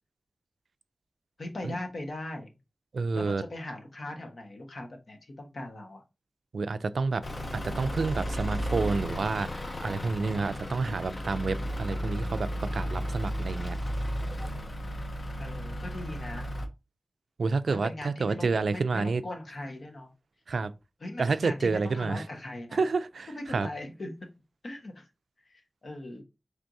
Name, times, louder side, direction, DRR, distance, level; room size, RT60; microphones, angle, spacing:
voice 1, 1.4-2.5 3.1-6.0 15.4-16.5 17.7-20.1 21.0-22.8 23.3-24.1 24.6-25.1 25.5-26.2, left 1 dB, 75° left, 1.2 m, -39 dB
voice 2, 2.9-3.4 6.5-7.2 7.5-9.5 9.8-13.8 17.4-19.2 20.5-20.7 21.2-22.2 22.7-23.7, right 4 dB, 90° right, 0.3 m, -29 dB
Truck / Idling, 7.2-16.7, equal, 45° left, 0.7 m, -34 dB
4.5 x 3.4 x 2.6 m
wide cardioid pair, 65°, 0 cm